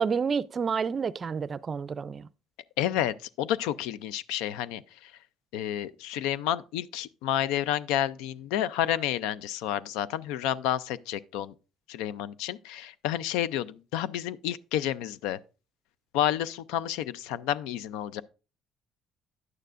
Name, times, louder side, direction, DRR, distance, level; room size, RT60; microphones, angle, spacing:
voice 1, 0.0-2.3, right 6 dB, 35° right, 0.4 m, -29 dB
voice 2, 2.8-5.1 5.5-11.5 11.9-15.4 16.1-18.2, left 11 dB, 90° left, 0.4 m, -30 dB
11.0 x 9.1 x 2.5 m
cardioid pair, 105°, 0 cm